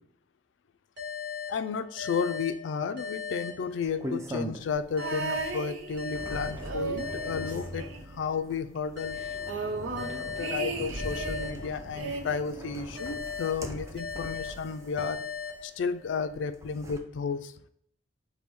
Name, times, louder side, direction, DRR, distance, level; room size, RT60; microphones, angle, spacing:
sound 1, 1.0-4.3 5.0-8.3 9.0-12.3 13.0-16.3, left 6 dB, 70° right, 1.4 m, -39 dB
voice 1, 1.5-9.2 9.9-15.2 15.6-17.5, left 5 dB, 75° left, 11 dB, 0.3 m, -33 dB
sound 2, 3.8-5.0 5.4-15.6 16.3-17.0, equal, 15° right, 0.4 m, -41 dB
sound 3, 5.0-6.3 6.6-8.5 8.8-8.9 9.1-11.5 12.0-13.2 14.1-14.2, right 4 dB, 85° right, 0.6 m, -36 dB
5.3 x 2.2 x 3.0 m, 0.67 s
head